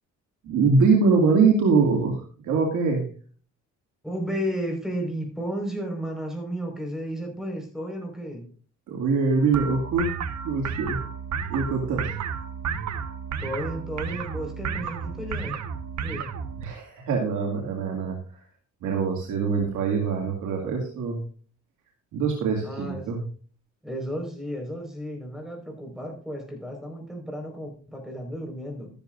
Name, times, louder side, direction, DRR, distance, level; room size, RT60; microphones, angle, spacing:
voice 1, 0.4-3.1 8.9-10.1 10.4-11.0 11.5-12.2 16.6-18.4 18.8-21.2 22.1-23.2, right 4 dB, 85° right, 0 dB, 2.4 m, -23 dB
voice 2, 4.0-8.4 13.4-15.6 16.0-16.3 22.6-23.0 23.8-28.9, equal, ahead, 2 dB, 4.8 m, -33 dB
sound 1, 9.5-16.6, right 6 dB, 65° right, 1.3 m, -32 dB
13.5 x 12.0 x 2.6 m, 0.42 s
cardioid pair, 90°, 30 cm